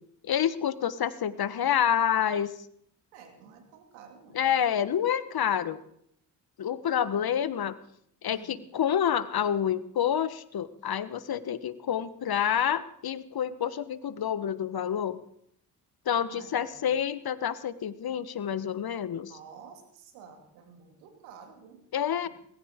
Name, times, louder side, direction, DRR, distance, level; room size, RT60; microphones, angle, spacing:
voice 1, 0.2-2.5 4.3-5.8 6.6-7.7 8.2-15.2 16.0-19.3 21.9-22.3, left 9 dB, 50° left, 15 dB, 1.2 m, -28 dB
voice 2, 3.1-4.4 7.1-7.2 8.3-8.6 16.1-16.9 19.2-21.9 22.2-22.3, right 6 dB, 90° right, 5 dB, 2.5 m, -51 dB
19.5 x 16.5 x 3.7 m, 0.70 s
hypercardioid pair, 50°, 46 cm